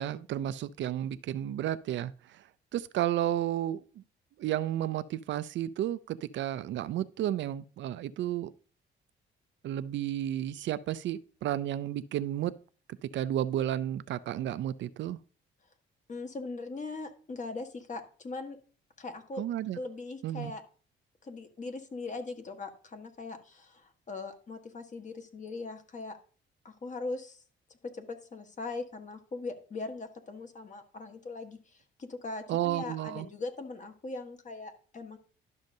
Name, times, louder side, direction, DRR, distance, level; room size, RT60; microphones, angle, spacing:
voice 1, 0.0-2.4 2.7-4.0 4.4-8.5 9.6-12.5 13.0-15.2 19.4-19.8 20.2-20.5 32.5-33.3, right 12 dB, 70° right, 0.4 m, -32 dB
voice 2, 16.1-18.6 19.0-19.4 19.7-20.6 21.2-26.2 26.6-27.4 27.8-35.2, left 3 dB, 40° left, 1.4 m, -40 dB
12.0 x 6.4 x 2.7 m
cardioid pair, 90°, 20 cm